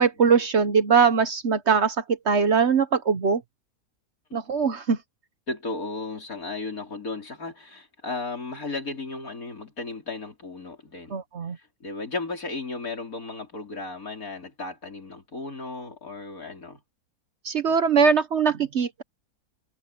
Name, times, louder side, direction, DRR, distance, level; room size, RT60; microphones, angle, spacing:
voice 1, 0.0-3.4 4.3-5.0 11.1-11.6 17.4-19.0, right 6 dB, 50° right, 1.1 m, -21 dB
voice 2, 5.5-11.2 11.5-16.8, left 3 dB, 65° left, 4.9 m, -35 dB
omnidirectional pair, 1.6 m